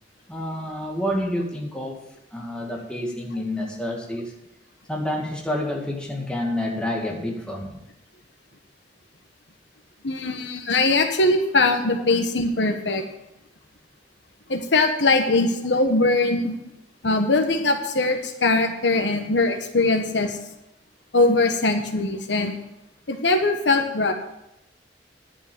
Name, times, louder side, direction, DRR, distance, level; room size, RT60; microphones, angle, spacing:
voice 1, 0.3-2.0 2.3-4.3 4.9-7.8, left 1 dB, 5° left, -1 dB, 2.0 m, -28 dB
voice 2, 10.0-13.0 14.5-16.5 17.0-20.4 21.1-22.6 23.1-24.1, left 2 dB, 85° left, 6 dB, 1.3 m, -21 dB
11.0 x 6.2 x 8.4 m, 0.86 s
head